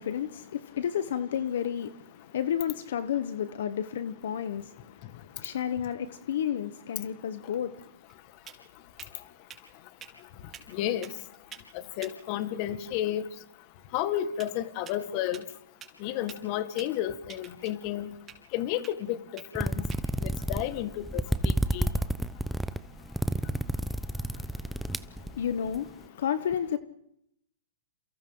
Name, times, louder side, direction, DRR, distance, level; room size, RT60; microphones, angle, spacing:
voice 1, 0.0-7.9 24.2-24.3 24.6-24.7 25.1-26.8, left 9 dB, 65° left, 1.2 m, -32 dB
sound 1, 7.3-21.9, right 7 dB, 20° right, 4.4 m, -53 dB
voice 2, 10.7-11.1 12.0-13.3 13.9-15.4 16.0-18.1 18.5-19.8 20.2-21.9, left 12 dB, 40° left, 1.8 m, -32 dB
sound 2, 19.5-25.8, right 1 dB, ahead, 0.8 m, -30 dB
29.0 x 28.0 x 3.9 m
hypercardioid pair, 135°, 0 cm